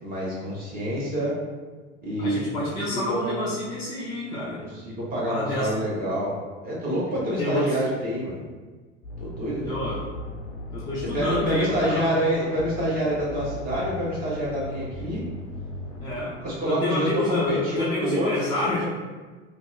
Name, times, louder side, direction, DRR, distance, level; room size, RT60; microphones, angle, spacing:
voice 1, 0.0-1.4 2.0-2.4 2.9-3.4 4.6-6.4 6.6-8.4 9.2-9.7 11.0-15.2 16.4-18.3, equal, 25° right, -6 dB, 1.1 m, -27 dB
voice 2, 2.2-4.6 5.3-5.7 7.3-7.8 9.6-10.1 10.7-12.1 16.0-16.4 16.6-18.8, left 1 dB, 10° left, -9 dB, 0.4 m, -28 dB
sound 1, 9.0-16.1, left 1 dB, 65° left, 0.5 m, -37 dB
2.5 x 2.2 x 2.5 m, 1.3 s
figure-of-eight pair, 80°, 36 cm